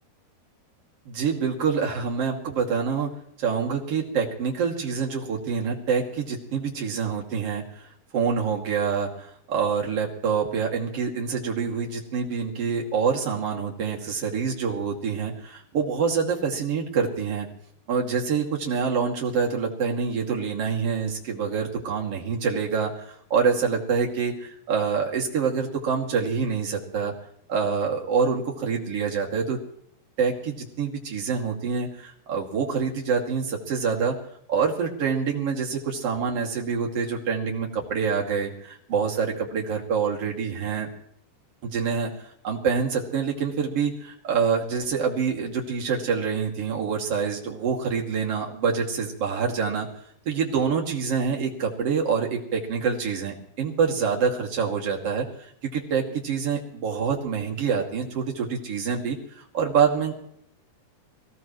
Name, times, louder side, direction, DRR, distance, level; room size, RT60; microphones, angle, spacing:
voice 1, 1.1-3.1 3.4-7.9 8.1-17.5 17.9-27.1 27.5-29.6 30.2-34.1 34.5-40.9 41.6-42.1 42.4-49.9 50.2-60.1, right 6 dB, 40° right, -1 dB, 2.9 m, -26 dB
24.5 x 16.5 x 3.1 m, 0.69 s
omnidirectional pair, 4.8 m